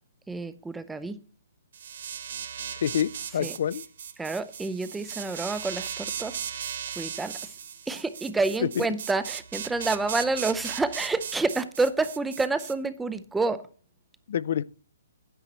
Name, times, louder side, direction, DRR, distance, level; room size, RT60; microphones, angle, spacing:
voice 1, 0.3-1.2 3.4-3.6 4.2-6.4 7.0-7.4 7.9-13.6, right 3 dB, 5° right, 0.5 m, -28 dB
sound 1, 1.7-12.7, right 8 dB, 60° right, 0.8 m, -37 dB
voice 2, 2.8-3.8 8.6-8.9 14.3-14.6, left 9 dB, 55° left, 0.4 m, -27 dB
10.0 x 7.9 x 4.2 m
hypercardioid pair, 155°, 0 cm